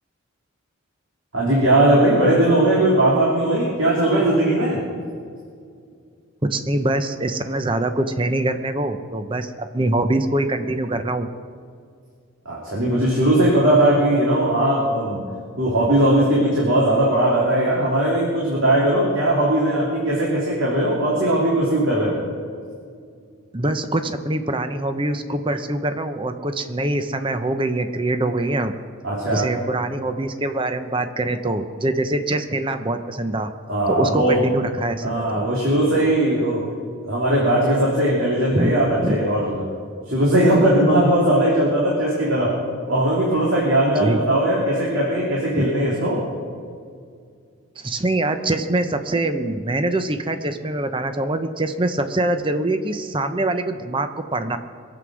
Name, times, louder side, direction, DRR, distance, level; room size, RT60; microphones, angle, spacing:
voice 1, 1.3-4.8 12.4-15.2 15.6-22.2 29.0-29.5 33.7-34.4 35.0-36.7 37.0-39.7 40.1-42.5 42.9-46.2, right 1 dB, 70° right, -6 dB, 3.1 m, -19 dB
voice 2, 6.4-11.3 23.5-28.7 29.3-33.5 33.9-35.5 38.5-38.7 39.0-39.2 44.0-44.2 45.6-45.7 47.8-54.6, right 2 dB, 25° right, 8 dB, 0.7 m, -24 dB
22.0 x 7.9 x 6.2 m, 2.2 s
head